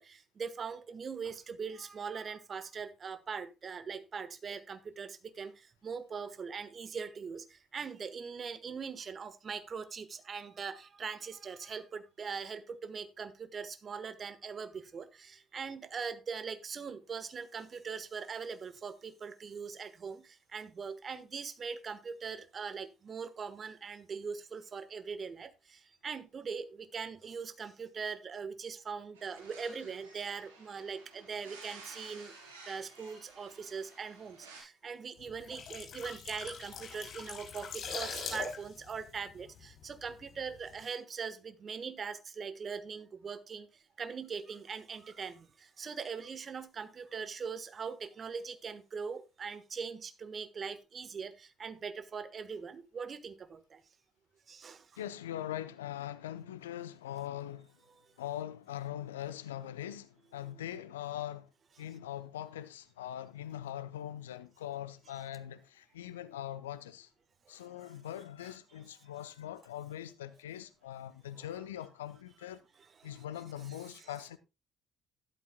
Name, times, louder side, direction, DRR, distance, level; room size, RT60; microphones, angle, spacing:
voice 1, 0.0-32.3 32.6-53.8 54.5-54.9 67.5-67.6 71.4-71.5 73.0-73.2 73.7-73.8, right 5 dB, 45° right, 1.4 m, -41 dB
sound 1, 29.1-34.6, right 3 dB, 80° right, 4.3 m, -53 dB
sound 2, 35.3-40.1 40.4-40.6, left 5 dB, 55° left, 6.1 m, -42 dB
voice 2, 55.0-57.7 58.2-61.5 61.8-67.1 67.5-72.6 73.0-74.4, left 11 dB, 85° left, 0.7 m, -42 dB
13.5 x 12.0 x 2.3 m
hypercardioid pair, 50°, 0 cm